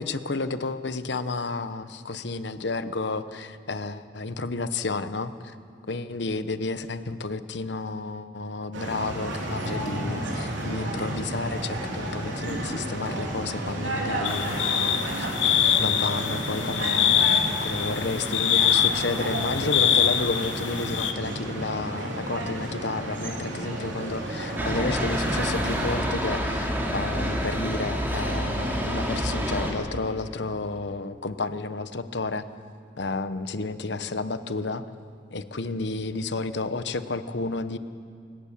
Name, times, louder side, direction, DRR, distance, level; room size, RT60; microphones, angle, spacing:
voice 1, 0.0-5.5 5.9-15.3 15.8-32.5 33.0-34.8 35.3-37.8, left 3 dB, 65° left, 12 dB, 1.0 m, -31 dB
sound 1, 8.7-25.9, right 1 dB, 85° right, 3.7 m, -32 dB
sound 2, 14.2-21.1, left 9 dB, 90° left, 1.2 m, -24 dB
sound 3, 24.6-29.7, equal, 10° right, 3.1 m, -28 dB
28.0 x 17.0 x 7.4 m, 2.5 s
head